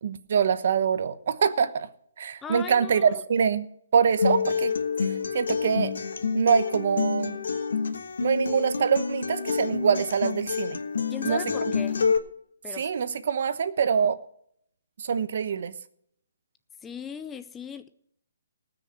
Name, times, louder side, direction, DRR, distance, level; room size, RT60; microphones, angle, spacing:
voice 1, 0.0-1.9 2.2-3.7 3.9-4.7 5.0-5.9 6.3-7.4 8.2-10.8 11.2-11.4 12.8-14.1 15.0-15.7, right 7 dB, 45° right, 1.0 m, -24 dB
voice 2, 2.4-3.2 11.1-12.0 12.6-12.9 16.8-17.9, left 7 dB, 10° left, 0.5 m, -38 dB
Acoustic guitar, 4.2-12.2, left 5 dB, 75° left, 1.6 m, -28 dB
19.0 x 6.6 x 6.4 m
hypercardioid pair, 170°, 0 cm